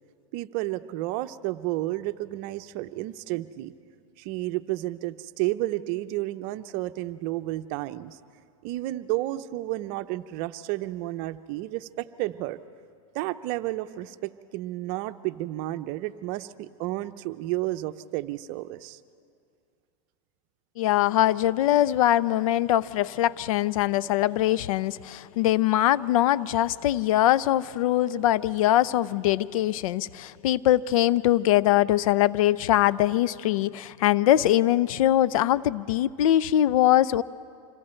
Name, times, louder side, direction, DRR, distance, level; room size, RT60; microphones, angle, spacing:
voice 1, 0.3-3.7 4.2-8.2 8.6-12.6 13.1-19.0, right 17 dB, 50° right, 12 dB, 0.7 m, -31 dB
voice 2, 20.8-37.2, left 13 dB, 75° left, 21 dB, 0.5 m, -22 dB
26.5 x 22.5 x 4.4 m, 2.3 s
supercardioid pair, 125°, 18 cm